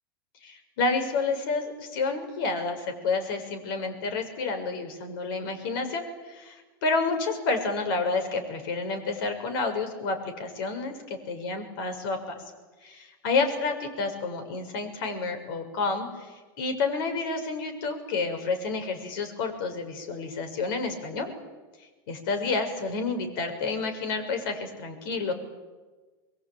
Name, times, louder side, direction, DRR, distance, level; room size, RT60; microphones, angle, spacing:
voice 1, 0.4-12.4 12.8-13.0 13.2-21.3 22.1-25.3, left 3 dB, 65° left, 7 dB, 6.6 m, -29 dB
28.0 x 23.0 x 9.1 m, 1.3 s
supercardioid pair, 145°, 13 cm